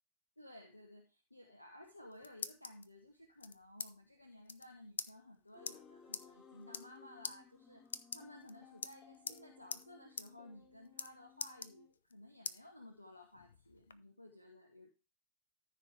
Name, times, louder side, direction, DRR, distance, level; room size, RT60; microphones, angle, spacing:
voice 1, 0.4-7.9 8.1-14.9, left 1 dB, 85° left, 3 dB, 1.0 m, -56 dB
sound 1, 1.8-2.9 3.4-3.9 4.2-4.3 4.5-4.7 5.0-5.1 5.7-5.8 6.1-6.3 6.6-7.0 7.2-7.4 7.9-8.5 8.8-9.4 9.7-9.8 10.2-10.3 10.6-11.1 11.4-12.1 12.5-12.6 13.1-14.0, left 6 dB, 70° left, 0.5 m, -43 dB
sound 2, 5.5-11.9, left 7 dB, 15° left, 3.7 m, -61 dB
13.5 x 5.0 x 3.4 m, 0.32 s
figure-of-eight pair, 90°, 0 cm